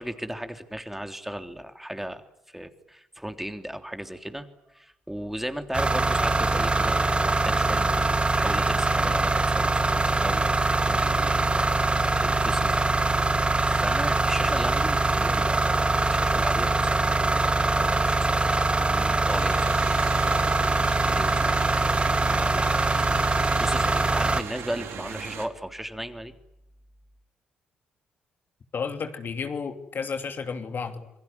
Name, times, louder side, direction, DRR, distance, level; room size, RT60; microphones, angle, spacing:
voice 1, 0.0-11.5 11.8-12.9 13.3-20.0 21.1-23.3 23.6-26.3, equal, 5° right, 7 dB, 3.3 m, -36 dB
sound 1, 5.7-24.4, right 2 dB, 25° right, 2.5 m, -23 dB
sound 2, 19.3-25.5, right 8 dB, 60° right, 3.4 m, -38 dB
voice 2, 28.7-31.1, left 5 dB, 45° left, 7 dB, 2.9 m, -32 dB
27.0 x 22.5 x 9.5 m, 0.82 s
hypercardioid pair, 45°, 5 cm